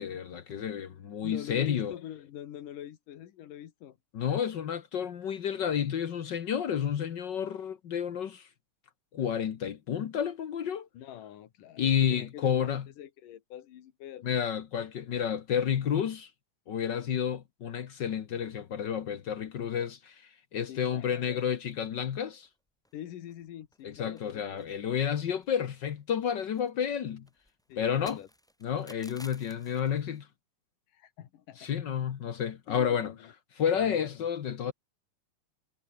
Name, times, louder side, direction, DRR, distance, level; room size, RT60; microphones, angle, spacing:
voice 1, 0.0-1.9 4.1-8.5 9.1-10.9 11.8-12.8 14.2-16.3 16.7-22.5 23.8-27.3 27.8-28.2 28.6-30.3 31.6-33.1 33.6-34.7, left 8 dB, 65° left, 1.1 m, -30 dB
voice 2, 1.2-4.0 10.9-14.3 20.7-21.5 22.9-24.7 27.7-28.3 30.9-31.7 32.7-33.3 33.8-34.3, left 11 dB, 90° left, 3.3 m, -45 dB
sound 1, 21.5-22.1 22.4-22.5 22.8-23.0 23.3-23.9 24.2-25.6 25.8-30.2, equal, ahead, 4.6 m, -55 dB
omnidirectional pair, 3.6 m